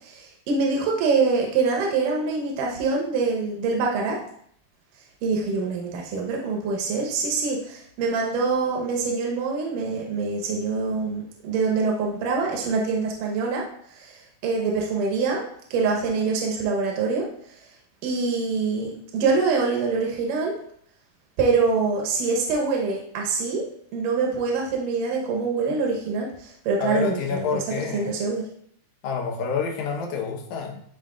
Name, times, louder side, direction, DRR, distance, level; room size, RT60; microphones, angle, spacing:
voice 1, 0.0-4.2 5.2-13.6 14.0-15.4 15.7-17.3 18.0-20.5 21.4-23.7 23.9-27.5 27.9-28.4, right 4 dB, 80° right, -1 dB, 2.6 m, -25 dB
voice 2, 26.8-28.2 29.0-30.8, left 6 dB, 70° left, 1 dB, 2.3 m, -28 dB
12.5 x 4.4 x 2.4 m, 0.65 s
omnidirectional pair, 3.7 m